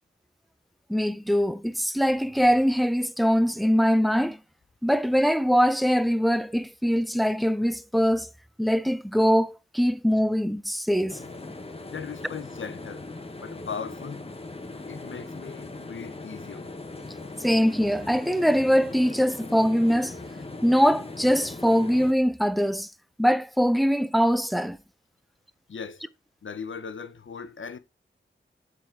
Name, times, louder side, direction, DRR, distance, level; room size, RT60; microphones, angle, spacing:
voice 1, 0.9-4.4 4.8-8.3 8.6-11.2 17.4-20.1 20.6-22.9 23.2-24.8, equal, ahead, 0.4 m, -22 dB
sound 1, 11.1-22.1, left 2 dB, 30° left, 1.0 m, -40 dB
voice 2, 11.9-13.1 13.4-14.2 14.9-16.7 25.7-26.0 26.4-27.8, left 6 dB, 70° left, 0.8 m, -38 dB
7.3 x 4.1 x 4.4 m
wide cardioid pair, 80°, 21 cm